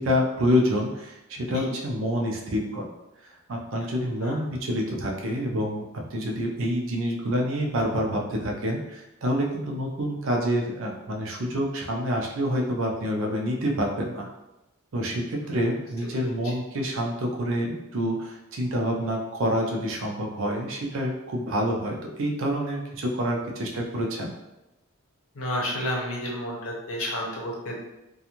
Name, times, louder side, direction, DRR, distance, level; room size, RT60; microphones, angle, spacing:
voice 1, 0.0-2.9 3.2-5.8 6.1-14.3 14.9-24.3, equal, 65° right, 0 dB, 0.5 m, -27 dB
voice 2, 25.3-27.8, left 1 dB, 80° left, -2 dB, 0.7 m, -31 dB
2.5 x 2.3 x 2.9 m, 0.95 s
head